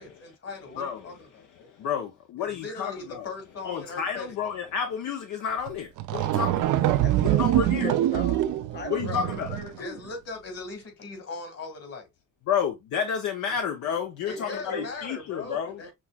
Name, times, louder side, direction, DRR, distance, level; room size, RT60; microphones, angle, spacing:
voice 1, 0.0-1.7 2.4-4.4 9.0-9.3 9.8-12.1 14.3-15.9, left 3 dB, 55° left, 2.1 m, -39 dB
voice 2, 0.8-1.1 1.8-3.3 3.6-6.7 7.4-7.9 8.9-9.6 12.5-15.9, left 7 dB, 70° left, 0.7 m, -30 dB
sound 1, 5.7-5.8 6.0-9.8, right 14 dB, 85° right, 0.6 m, -24 dB
voice 3, 6.8-8.4 8.7-10.0 14.3-14.9, left 3 dB, 35° left, 1.3 m, -39 dB
6.2 x 2.9 x 2.3 m
cardioid pair, 90°, 30 cm